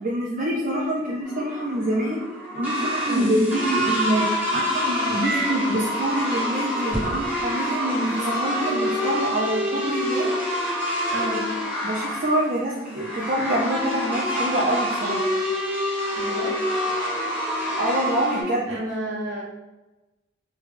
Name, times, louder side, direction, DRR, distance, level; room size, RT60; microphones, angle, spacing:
voice 1, 0.0-2.2 2.5-4.2 4.5-10.3 11.8-15.3 17.8-18.8, right 1 dB, 45° right, -5 dB, 0.5 m, -25 dB
sound 1, 1.2-18.4, equal, 10° right, 1.2 m, -27 dB
voice 2, 11.1-11.4 16.1-16.6 18.7-19.4, right 1 dB, 65° right, -5 dB, 1.1 m, -30 dB
3.2 x 2.2 x 3.3 m, 1.1 s
head